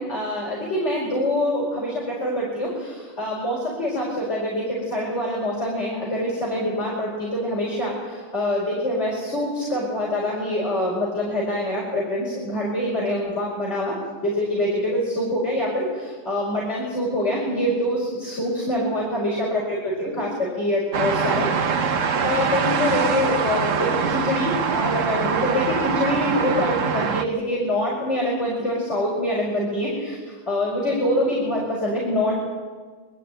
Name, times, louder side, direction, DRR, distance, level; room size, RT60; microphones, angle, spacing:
voice 1, 0.0-13.9 14.2-21.5 22.0-30.2 30.5-32.4, left 1 dB, 30° left, -5 dB, 5.3 m, -25 dB
sound 1, 20.9-27.2, right 6 dB, 50° right, 1.0 m, -23 dB
24.0 x 13.5 x 9.1 m, 1.5 s
omnidirectional pair, 2.3 m